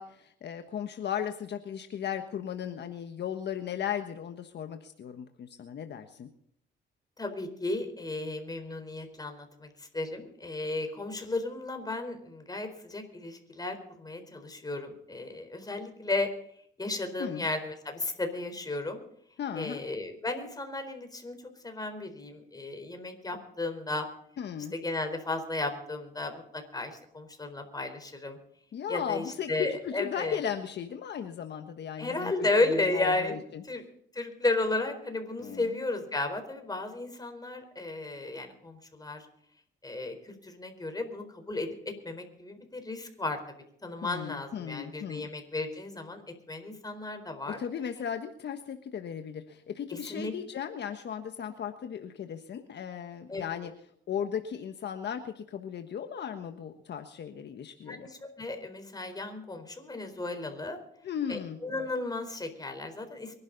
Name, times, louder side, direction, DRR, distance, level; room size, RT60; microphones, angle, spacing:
voice 1, 0.0-6.3 17.2-17.5 19.4-19.8 24.4-24.7 28.7-33.6 35.4-35.8 44.0-45.3 47.5-53.7 54.1-58.1 61.0-61.6, left 8 dB, 60° left, 7 dB, 1.4 m, -36 dB
voice 2, 7.2-16.3 16.8-19.0 19.6-21.4 21.6-24.1 24.7-28.4 28.9-30.4 32.0-33.3 33.7-33.8 34.1-39.3 39.8-43.4 43.8-46.2 46.5-47.6 49.9-50.3 53.3-53.4 57.9-60.8 61.3-63.3, left 2 dB, 20° left, 6 dB, 4.3 m, -34 dB
24.0 x 11.5 x 4.1 m, 0.69 s
cardioid pair, 90°, 20 cm